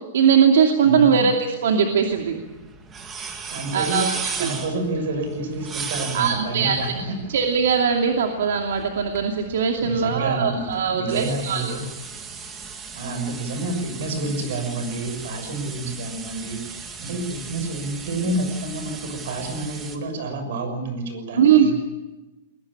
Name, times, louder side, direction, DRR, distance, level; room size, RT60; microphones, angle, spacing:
voice 1, 0.1-2.4 3.7-4.1 4.4-4.5 6.1-6.8 7.3-11.7 21.3-21.7, right 7 dB, 75° right, 3 dB, 2.6 m, -20 dB
voice 2, 0.8-1.3 3.5-4.0 4.4-7.1 9.8-11.8 12.9-21.7, right 2 dB, 55° right, 8 dB, 6.7 m, -29 dB
sound 1, 1.9-20.0, right 5 dB, 15° right, 1.9 m, -37 dB
22.5 x 20.5 x 8.8 m, 1.1 s
supercardioid pair, 180°, 0 cm